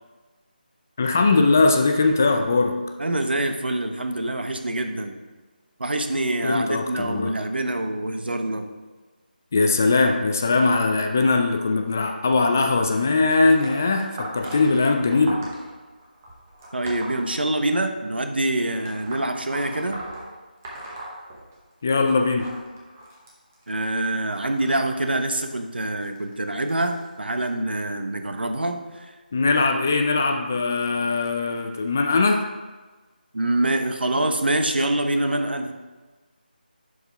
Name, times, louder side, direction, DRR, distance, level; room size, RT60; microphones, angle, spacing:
voice 1, 1.0-2.7 6.4-7.3 9.5-15.4 21.8-22.5 29.3-32.4, left 3 dB, 15° left, 4 dB, 0.3 m, -20 dB
voice 2, 3.0-5.2 5.8-8.7 16.7-20.0 23.7-29.2 33.3-35.7, right 1 dB, 90° right, 6 dB, 1.0 m, -25 dB
sound 1, 12.9-18.0 18.8-21.8 22.1-27.4 28.2-28.5 29.5-29.6 30.5-30.6 31.3-31.4, right 1 dB, 15° right, 0.9 m, -40 dB
11.0 x 4.8 x 3.4 m, 1.3 s
figure-of-eight pair, 175°, 5 cm